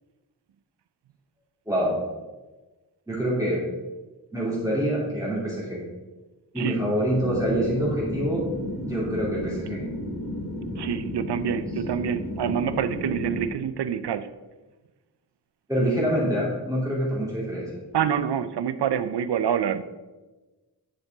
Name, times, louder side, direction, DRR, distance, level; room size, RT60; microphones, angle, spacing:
voice 1, 1.7-2.0 3.1-3.6 4.3-5.8 6.5-8.4 8.8-9.8 15.7-17.8, right 1 dB, 10° right, -8 dB, 2.8 m, -26 dB
sound 1, 7.1-13.5, left 1 dB, 80° left, 2.4 m, -33 dB
voice 2, 10.8-14.3 17.9-19.8, right 8 dB, 85° right, 12 dB, 0.6 m, -26 dB
10.5 x 6.6 x 3.5 m, 1.2 s
wide cardioid pair, 90°, 39 cm